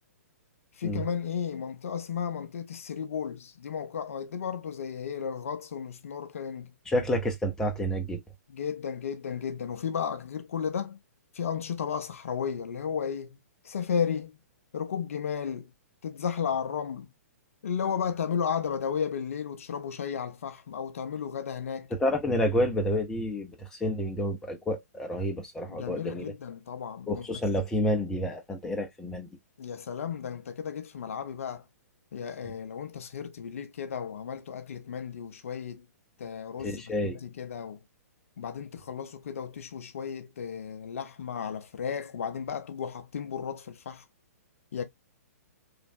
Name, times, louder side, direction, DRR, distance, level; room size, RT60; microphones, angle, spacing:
voice 1, 0.8-6.7 8.5-11.0 11.3-13.4 13.6-14.4 14.7-15.7 16.0-17.1 17.6-21.9 25.7-27.3 29.6-31.6 32.1-35.9 36.2-37.8 38.4-44.0 44.7-44.8, left 7 dB, 55° left, 0.5 m, -34 dB
voice 2, 6.9-8.2 21.9-26.3 27.1-29.3 36.6-37.2, equal, 5° left, 0.6 m, -29 dB
3.1 x 2.4 x 2.5 m
figure-of-eight pair, 120°, 9 cm